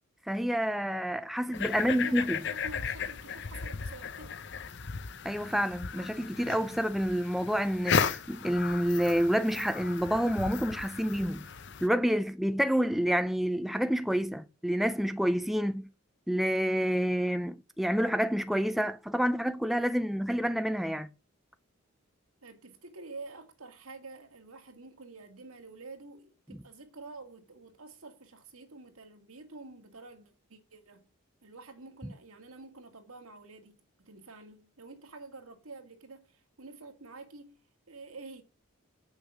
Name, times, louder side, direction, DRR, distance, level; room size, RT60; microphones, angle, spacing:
voice 1, 0.3-2.4 5.2-11.5 11.8-15.9 16.3-21.1, equal, ahead, 0.4 m, -28 dB
sound 1, 1.5-11.9, left 6 dB, 55° left, 0.7 m, -35 dB
voice 2, 1.7-4.4 22.4-31.1 31.4-37.6 37.9-38.4, right 3 dB, 85° right, 1.9 m, -48 dB
8.2 x 6.4 x 6.1 m
head